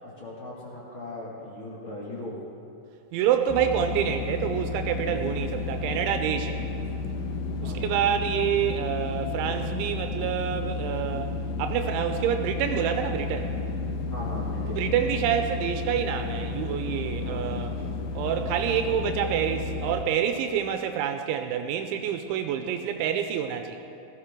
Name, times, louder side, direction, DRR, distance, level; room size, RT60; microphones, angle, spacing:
voice 1, 0.0-2.3 7.6-7.9 14.1-14.8 17.2-17.7, left 2 dB, 40° left, -5 dB, 2.1 m, -38 dB
voice 2, 3.1-6.7 7.6-11.3 11.6-13.5 14.8-17.7 18.2-23.8, right 9 dB, 85° right, 6 dB, 3.0 m, -27 dB
sound 1, 3.5-20.0, left 3 dB, 80° left, 2.0 m, -32 dB
17.5 x 15.5 x 3.8 m, 2.6 s
omnidirectional pair, 5.4 m